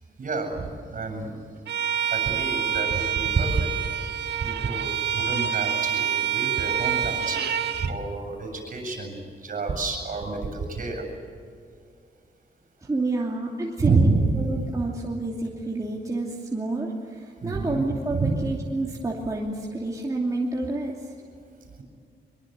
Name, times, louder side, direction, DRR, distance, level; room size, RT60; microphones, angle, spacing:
voice 1, 0.2-1.3 2.1-3.7 4.4-11.1 13.8-14.7 17.4-17.8 18.1-18.4, right 3 dB, 50° right, 4 dB, 7.5 m, -28 dB
Bowed string instrument, 1.7-7.9, right 9 dB, 80° right, 1.7 m, -27 dB
voice 2, 12.8-14.1 14.3-21.1, right 2 dB, 20° right, -3 dB, 2.8 m, -29 dB
24.0 x 23.5 x 8.2 m, 2.4 s
wide cardioid pair, 140°, 17 cm